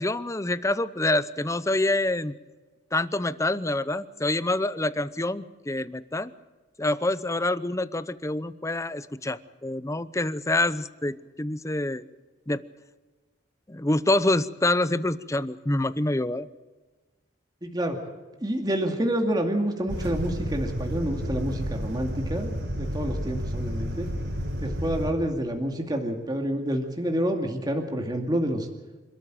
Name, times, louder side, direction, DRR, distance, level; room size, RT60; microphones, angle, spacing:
voice 1, 0.0-2.3 2.9-6.3 6.8-12.0 12.5-12.6 13.7-16.5, left 2 dB, 15° left, 15 dB, 0.7 m, -26 dB
voice 2, 17.6-18.0 18.4-24.1 24.6-28.7, right 1 dB, 20° right, 3 dB, 2.3 m, -28 dB
sound 1, 19.9-25.1, equal, 70° right, 4.4 m, -31 dB
27.0 x 13.5 x 8.9 m, 1.2 s
head